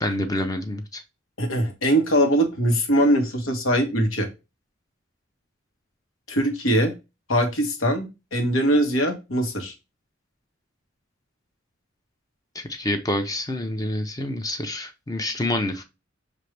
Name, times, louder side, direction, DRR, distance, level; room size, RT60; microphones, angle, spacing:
voice 1, 0.0-1.0 12.5-15.8, left 1 dB, 20° left, 0.5 m, -27 dB
voice 2, 1.4-4.3 6.3-6.9 7.3-9.7, equal, 90° left, 1.3 m, -22 dB
6.1 x 2.5 x 3.2 m
head